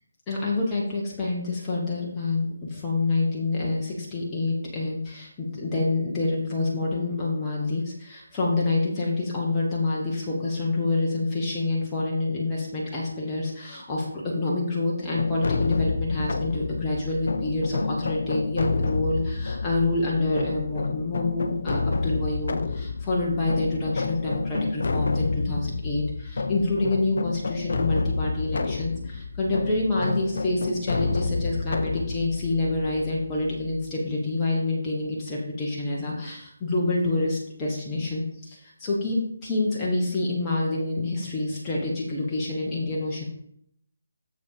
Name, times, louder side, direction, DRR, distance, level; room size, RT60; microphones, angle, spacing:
voice 1, 0.3-43.2, left 2 dB, 15° left, -5 dB, 1.4 m, -27 dB
sound 1, 15.2-33.9, left 3 dB, 55° left, 0.5 m, -29 dB
7.0 x 4.9 x 4.9 m, 0.69 s
figure-of-eight pair, 145°, 0 cm